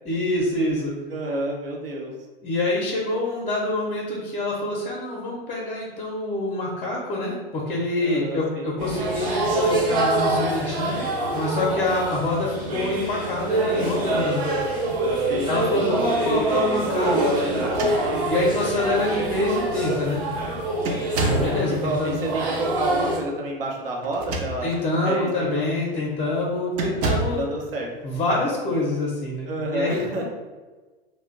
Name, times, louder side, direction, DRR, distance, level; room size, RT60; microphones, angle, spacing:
voice 1, 0.0-1.0 2.4-11.1 11.3-14.5 15.5-17.7 18.3-20.2 21.2-22.2 24.6-27.4 28.0-30.2, left 2 dB, 20° left, -4 dB, 0.6 m, -26 dB
voice 2, 1.1-2.1 8.0-8.7 15.3-15.9 21.8-24.7 25.1-25.3 27.3-27.9 29.5-30.2, right 2 dB, 70° right, -1 dB, 0.7 m, -29 dB
sound 1, 8.8-23.2, right 2 dB, 45° right, 0.9 m, -25 dB
sound 2, 17.6-18.5 19.4-19.5 19.8-20.2 20.8-21.6 24.0-24.9 25.4-25.6 26.7-27.5, right 2 dB, 30° right, 0.4 m, -28 dB
2.5 x 2.1 x 3.7 m, 1.3 s
figure-of-eight pair, 95°, 30 cm